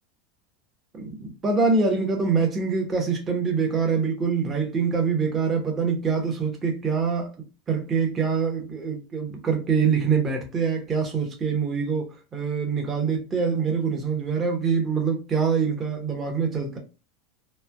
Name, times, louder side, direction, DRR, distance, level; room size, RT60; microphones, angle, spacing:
voice 1, 0.9-7.3 7.7-16.8, right 5 dB, 30° right, 0.9 m, -25 dB
3.1 x 2.0 x 2.3 m
hypercardioid pair, 100°, 0 cm